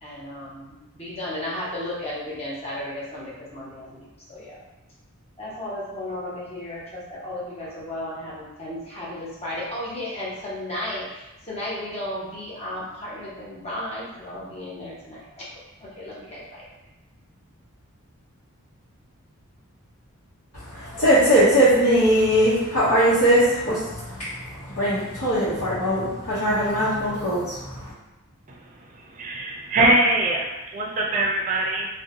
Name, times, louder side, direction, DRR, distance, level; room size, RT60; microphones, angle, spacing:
voice 1, 0.0-4.6 5.4-15.5 15.8-16.7, left 1 dB, 30° left, -7 dB, 0.7 m, -34 dB
voice 2, 20.5-27.9, equal, 90° left, -12 dB, 0.8 m, -21 dB
voice 3, 28.5-31.9, right 1 dB, 35° right, -1 dB, 0.4 m, -23 dB
2.7 x 2.1 x 2.6 m, 1.0 s
head